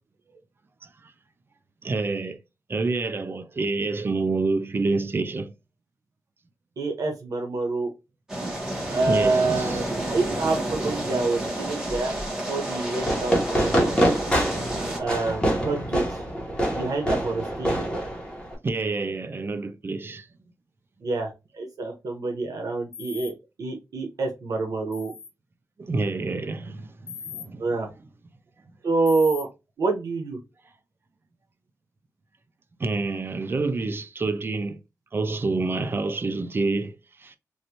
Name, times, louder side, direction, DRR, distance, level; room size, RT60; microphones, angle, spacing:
voice 1, 1.8-2.4 2.7-5.5 8.8-9.8 10.1-10.2 18.6-20.3 25.8-27.6 32.8-34.8 35.1-37.4, right 3 dB, 40° right, 0.5 m, -28 dB
voice 2, 6.8-7.9 8.9-12.2 12.5-14.0 15.0-16.2 16.7-17.9 21.0-23.3 23.6-25.1 27.6-27.9 28.8-29.5 29.8-30.4, right 3 dB, 85° right, 1.0 m, -27 dB
sound 1, 8.3-15.0, right 1 dB, 10° right, 1.5 m, -30 dB
Fireworks, 13.0-18.5, equal, 15° left, 1.2 m, -25 dB
sound 2, 22.9-23.3 24.9-25.3 27.1-27.5 29.1-29.4, left 7 dB, 50° left, 0.6 m, -38 dB
3.2 x 2.6 x 2.8 m
wide cardioid pair, 125°, 6 cm